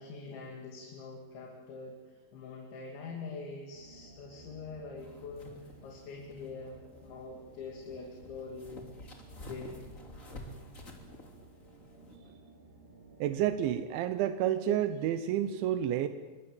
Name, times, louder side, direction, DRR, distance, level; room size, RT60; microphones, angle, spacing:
voice 1, 0.0-8.9 9.4-9.8, left 4 dB, 80° left, 0 dB, 5.0 m, -44 dB
sound 1, 3.7-13.8, right 2 dB, 50° right, 5.3 m, -56 dB
sound 2, 5.0-12.2, left 1 dB, 20° left, 2.7 m, -50 dB
voice 2, 13.2-16.1, right 11 dB, 85° right, 10 dB, 3.3 m, -30 dB
27.0 x 23.0 x 7.9 m, 1.3 s
omnidirectional pair, 5.2 m